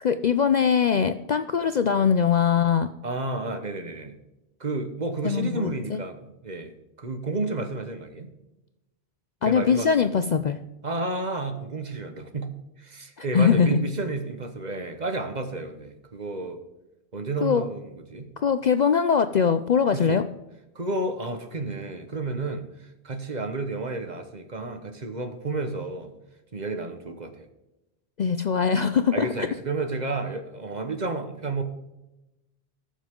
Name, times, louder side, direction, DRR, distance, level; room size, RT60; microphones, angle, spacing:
voice 1, 0.0-2.9 5.2-5.7 9.4-10.6 13.3-13.8 17.4-17.6 18.4-20.2 28.2-29.3, left 7 dB, 55° left, 10 dB, 0.5 m, -21 dB
voice 2, 3.0-4.1 4.6-8.3 9.4-9.9 10.8-16.6 17.1-18.3 19.9-20.2 20.7-26.1 26.5-27.5 29.1-31.6, right 2 dB, 40° right, 6 dB, 1.3 m, -31 dB
18.5 x 7.2 x 3.7 m, 0.97 s
omnidirectional pair, 1.1 m